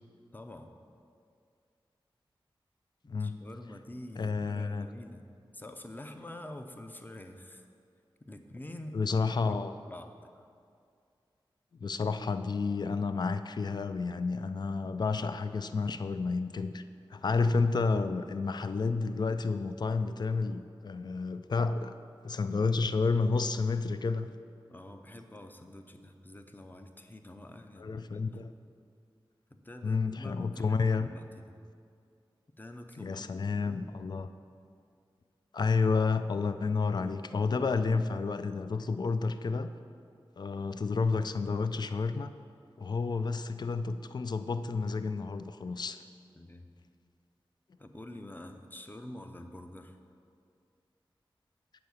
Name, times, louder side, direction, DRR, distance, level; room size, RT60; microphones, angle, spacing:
voice 1, 0.3-0.7 3.1-5.3 5.5-7.7 8.2-9.0 9.4-9.5 9.8-10.5 24.7-28.2 29.5-31.5 32.6-33.3 33.6-33.8 46.4-46.7 47.8-50.0, left 1 dB, 20° left, 6 dB, 0.7 m, -46 dB
voice 2, 3.1-3.4 4.2-4.9 8.9-9.7 11.8-16.8 17.1-21.9 22.2-24.3 27.8-28.5 29.8-31.1 33.0-34.3 35.5-39.7 40.4-42.3 42.8-46.0, left 4 dB, 50° left, 11 dB, 0.4 m, -30 dB
7.8 x 4.8 x 7.0 m, 2.3 s
cardioid pair, 45°, 9 cm